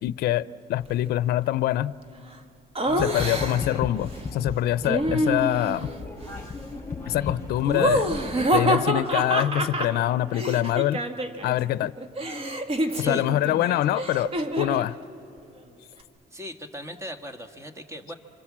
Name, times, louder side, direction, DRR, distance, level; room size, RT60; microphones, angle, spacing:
voice 1, 0.0-1.9 3.0-5.9 7.1-8.1 8.5-11.0 11.4-11.9 13.0-15.0, left 14 dB, 70° left, 17 dB, 0.6 m, -25 dB
Laughter, 2.7-3.8 4.8-5.9 7.6-11.5 11.8-14.9, right 1 dB, 35° right, 1.6 m, -27 dB
sound 1, 2.9-8.5, left 4 dB, 20° left, 3.6 m, -35 dB
sound 2, 5.9-10.9, left 1 dB, 70° right, 7.8 m, -51 dB
voice 2, 12.9-13.3 16.3-18.1, equal, 15° right, 7 dB, 1.7 m, -38 dB
26.5 x 26.5 x 7.5 m, 2.8 s
cardioid pair, 110°, 17 cm